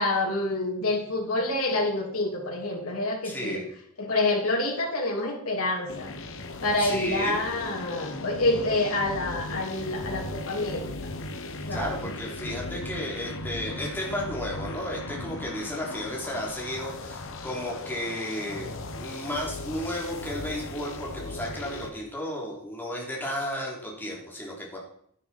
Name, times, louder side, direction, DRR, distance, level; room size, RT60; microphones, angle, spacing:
voice 1, 0.0-3.6 4.0-6.1 6.6-11.1 11.7-12.1, left 2 dB, 90° left, -1 dB, 2.8 m, -27 dB
voice 2, 3.2-3.7 6.8-7.4 11.7-18.7 19.0-24.8, left 1 dB, 10° left, -3 dB, 3.5 m, -33 dB
sound 1, 5.9-21.9, left 2 dB, 65° left, 1.3 m, -37 dB
11.0 x 10.0 x 4.4 m, 0.67 s
head